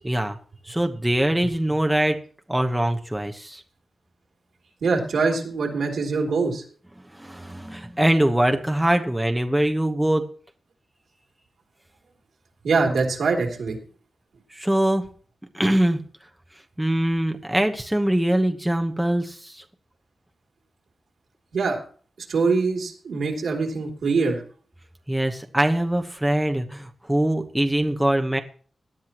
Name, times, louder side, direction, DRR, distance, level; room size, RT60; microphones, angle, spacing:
voice 1, 0.0-0.4 0.7-2.2 2.5-3.6 7.1-10.3 14.5-15.1 15.5-16.0 16.8-19.6 25.1-28.4, right 1 dB, 5° right, 4 dB, 1.1 m, -23 dB
voice 2, 4.8-6.6 12.6-13.8 21.5-21.8 22.2-24.4, right 4 dB, 90° right, 1 dB, 3.3 m, -23 dB
18.0 x 11.5 x 3.0 m, 0.43 s
wide cardioid pair, 115°, 0 cm